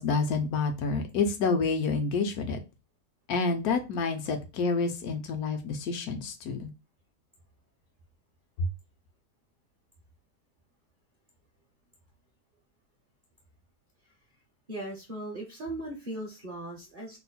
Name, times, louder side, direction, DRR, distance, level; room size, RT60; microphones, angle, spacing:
voice 1, 0.0-2.6 3.3-6.7, left 4 dB, 75° left, 6 dB, 1.1 m, -28 dB
voice 2, 14.7-17.2, right 1 dB, 50° right, -1 dB, 0.6 m, -38 dB
3.0 x 2.1 x 4.0 m, 0.27 s
omnidirectional pair, 1.6 m